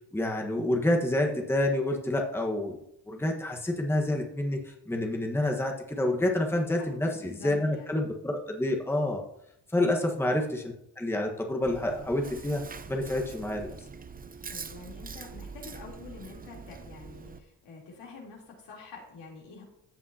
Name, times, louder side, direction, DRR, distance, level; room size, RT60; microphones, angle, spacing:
voice 1, 0.1-2.8 3.1-9.2 9.7-12.6 12.9-13.7, left 1 dB, 5° left, 1 dB, 1.3 m, -28 dB
voice 2, 6.8-8.0 14.5-19.6, left 4 dB, 75° left, -2 dB, 3.5 m, -47 dB
Chewing mastication, 11.6-17.4, right 5 dB, 20° right, 0.6 m, -43 dB
14.0 x 7.3 x 2.8 m, 0.77 s
cardioid pair, 85°, 42 cm